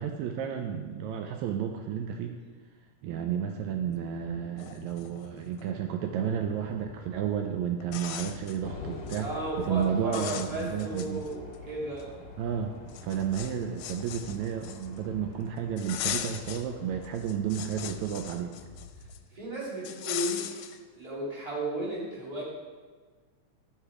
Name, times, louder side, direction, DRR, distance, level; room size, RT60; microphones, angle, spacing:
voice 1, 0.0-2.3 3.0-9.3 9.6-11.3 12.4-12.8 13.0-18.5, right 8 dB, 80° right, 4 dB, 1.8 m, -32 dB
sound 1, 4.2-4.3 4.6-5.7 7.2-7.3 7.8-8.6 8.9-9.3 9.6-9.8 10.1-11.6 12.0-12.1 12.9-15.1 15.8-16.7 17.0-19.2 19.8-20.8, left 11 dB, 80° left, 1.7 m, -39 dB
sound 2, 4.2-19.2, left 3 dB, 20° left, 1.6 m, -50 dB
sound 3, 8.6-17.1, left 4 dB, 60° left, 1.1 m, -48 dB
voice 2, 9.2-12.1 19.3-20.4 20.9-22.4, right 1 dB, 15° right, -6 dB, 2.0 m, -34 dB
11.5 x 4.9 x 4.8 m, 1.5 s
omnidirectional pair, 3.4 m